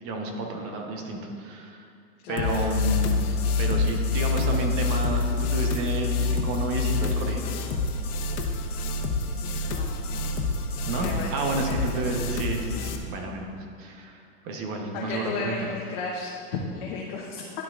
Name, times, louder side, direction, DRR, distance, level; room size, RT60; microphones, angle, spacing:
voice 1, 0.0-1.9 2.3-3.3 3.6-7.4 10.9-15.7, right 2 dB, 30° right, 2 dB, 0.9 m, -31 dB
voice 2, 2.2-2.5 9.6-10.0 10.9-11.8 14.9-17.5, left 4 dB, 45° left, -2 dB, 0.9 m, -34 dB
sound 1, 2.4-13.0, left 3 dB, 90° left, 0.9 m, -27 dB
11.5 x 5.7 x 2.4 m, 2.3 s
supercardioid pair, 150°, 43 cm